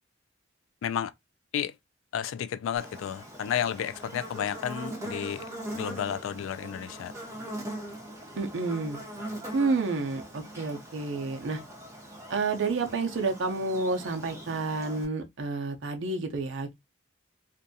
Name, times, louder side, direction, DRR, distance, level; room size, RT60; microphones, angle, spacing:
voice 1, 0.8-1.1 1.5-1.7 2.1-5.5 5.7-7.1, left 9 dB, 85° left, 0.3 m, -32 dB
Buzz, 2.8-15.0, right 1 dB, 15° right, 0.7 m, -41 dB
voice 2, 8.4-9.0 9.5-11.6 12.3-16.7, right 3 dB, 70° right, 0.5 m, -30 dB
2.6 x 2.3 x 2.5 m
head